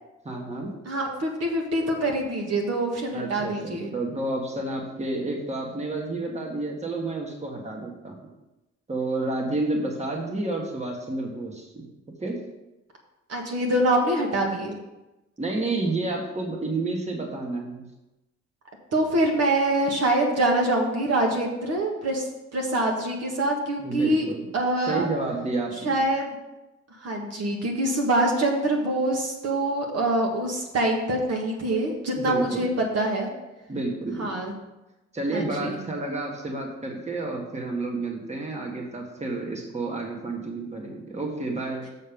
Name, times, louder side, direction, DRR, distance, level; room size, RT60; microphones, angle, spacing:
voice 1, 0.2-0.7 3.1-8.1 8.9-11.8 12.2-12.3 15.4-17.8 23.8-24.5 24.9-26.0 32.2-32.7 33.7-34.3 35.1-41.9, right 2 dB, 20° right, 0 dB, 1.6 m, -30 dB
voice 2, 0.9-3.9 13.3-14.8 18.9-22.3 22.5-24.2 24.5-25.1 25.8-26.3 27.0-32.7 32.9-33.3 34.2-34.5 35.3-35.8, right 1 dB, 55° right, 0 dB, 1.7 m, -25 dB
6.6 x 6.5 x 5.3 m, 1.0 s
cardioid pair, 90°, 30 cm